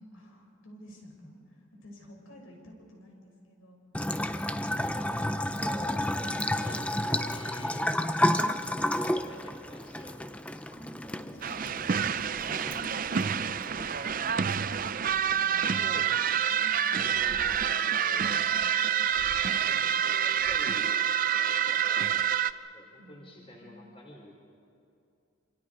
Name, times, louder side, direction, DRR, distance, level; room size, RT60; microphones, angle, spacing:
voice 1, 0.0-3.8 5.4-5.9 10.7-11.7 12.1-14.2 14.9-16.0 16.5-17.3 18.1-18.7 23.0-24.3, equal, 85° left, 0 dB, 6.4 m, -52 dB
Bathtub (filling or washing) / Trickle dribble, 3.9-14.9, left 1 dB, 5° left, 0.5 m, -31 dB
voice 2, 4.6-5.0 5.6-5.9 6.2-8.0 8.6-10.6 11.0-12.3 15.5-18.6 19.7-22.2 22.7-24.3, left 1 dB, 25° left, -1 dB, 3.5 m, -48 dB
sound 1, 11.4-22.5, right 8 dB, 40° right, 0.5 m, -27 dB
27.0 x 26.5 x 4.9 m, 2.6 s
head